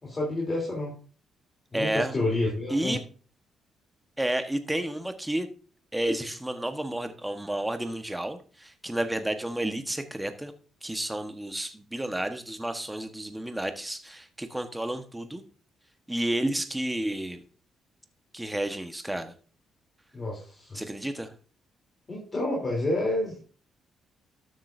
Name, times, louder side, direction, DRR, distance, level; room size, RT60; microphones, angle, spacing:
voice 1, 0.0-0.9 1.7-3.0 20.1-20.8 22.1-23.4, left 2 dB, 30° left, -3 dB, 3.5 m, -29 dB
voice 2, 1.7-2.2 2.7-3.0 4.2-5.5 5.9-10.5 10.8-15.4 16.1-17.4 18.3-19.3 20.7-21.3, right 1 dB, 10° right, 7 dB, 1.3 m, -31 dB
12.5 x 7.7 x 2.7 m, 0.40 s
cardioid pair, 90°, 0 cm